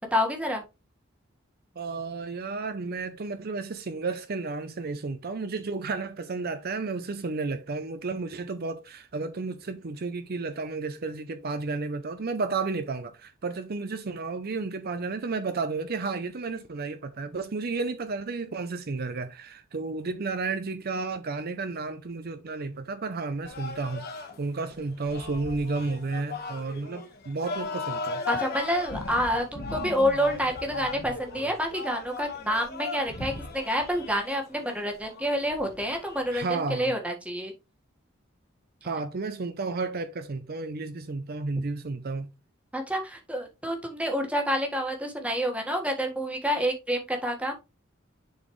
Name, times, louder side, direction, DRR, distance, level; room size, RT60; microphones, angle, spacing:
voice 1, 0.1-0.6 28.3-37.5 42.7-47.5, equal, 5° right, 1.6 m, -28 dB
voice 2, 1.8-28.2 36.3-36.9 38.8-42.3, right 3 dB, 50° right, 0.6 m, -32 dB
sound 1, 23.4-36.4, left 3 dB, 55° left, 1.4 m, -37 dB
10.5 x 4.2 x 3.2 m
head